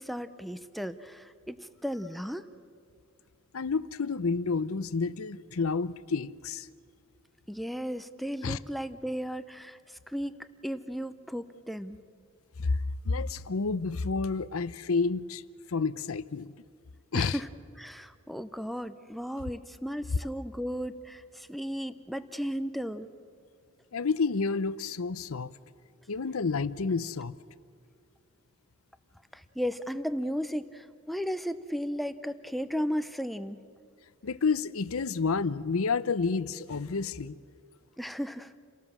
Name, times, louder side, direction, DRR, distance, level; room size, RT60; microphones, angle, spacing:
voice 1, 0.0-2.5 7.5-12.0 17.1-17.5 17.8-23.1 29.3-33.6 38.0-38.5, equal, ahead, 0.6 m, -35 dB
voice 2, 3.5-6.7 8.4-8.6 12.6-12.8 13.1-15.4 15.7-16.5 17.1-17.4 23.9-25.5 26.1-27.4 34.2-37.4, left 4 dB, 85° left, 0.7 m, -29 dB
29.0 x 18.0 x 7.3 m
head